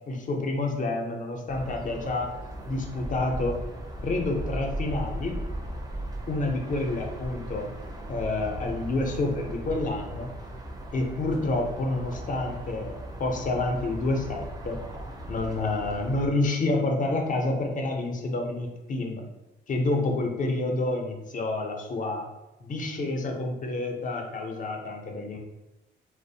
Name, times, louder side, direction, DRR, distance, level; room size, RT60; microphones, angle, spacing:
voice 1, 0.1-2.3 2.7-3.6 4.0-5.4 6.3-7.7 8.1-10.3 10.9-14.8 15.3-19.2 19.7-22.3 22.6-25.4, left 2 dB, 40° left, 2 dB, 0.5 m, -28 dB
sound 1, 1.5-16.3, right 1 dB, 20° right, 0.4 m, -37 dB
2.5 x 2.0 x 2.6 m, 0.96 s
cardioid pair, 90°, 20 cm